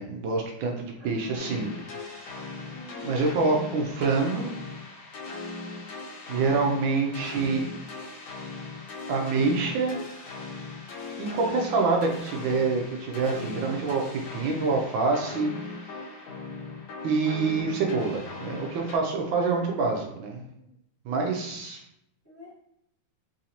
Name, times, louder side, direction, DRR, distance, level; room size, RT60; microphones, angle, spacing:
voice 1, 0.0-1.7 2.2-2.4 3.0-4.5 6.3-7.6 9.1-10.0 11.2-15.9 17.0-20.4 21.0-21.8, right 4 dB, 75° right, 1 dB, 1.2 m, -26 dB
voice 2, 1.0-2.1 2.7-3.1 19.9-20.0 20.6-20.7 22.2-22.6, left 1 dB, 15° left, -9 dB, 0.7 m, -46 dB
sound 1, 1.4-19.0, left 3 dB, 75° left, 1.5 m, -39 dB
3.8 x 2.5 x 2.8 m, 0.78 s
omnidirectional pair, 2.3 m